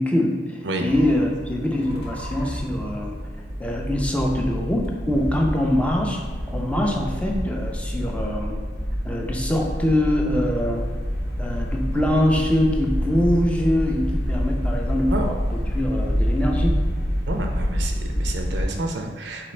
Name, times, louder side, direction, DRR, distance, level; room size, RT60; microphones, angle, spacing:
voice 1, 0.0-3.2 3.6-6.2 6.5-8.6 9.0-10.9 11.4-16.7, left 1 dB, 5° left, 0 dB, 0.4 m, -23 dB
sound 1, 0.8-18.7, equal, 60° left, 0.7 m, -27 dB
voice 2, 17.3-19.5, right 2 dB, 70° right, 3 dB, 0.5 m, -30 dB
3.9 x 3.8 x 3.2 m, 1.4 s
head